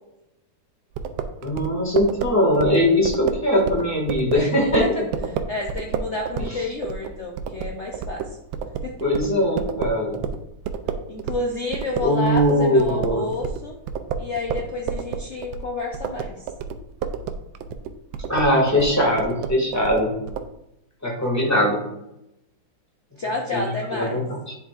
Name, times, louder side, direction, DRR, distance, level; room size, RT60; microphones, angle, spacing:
sound 1, 1.0-11.5 11.7-20.5, right 6 dB, 80° right, 1.3 m, -30 dB
voice 1, 1.4-4.8 6.4-6.5 9.0-10.2 12.0-13.3 18.3-20.1 21.0-21.8 23.5-23.6 23.9-24.2, left 1 dB, 10° left, -2 dB, 1.8 m, -20 dB
voice 2, 5.3-8.4 8.8-9.0 11.1-13.8 14.2-16.5 23.2-24.2, left 2 dB, 55° left, -1 dB, 0.7 m, -30 dB
10.5 x 4.5 x 2.4 m, 0.85 s
omnidirectional pair, 2.1 m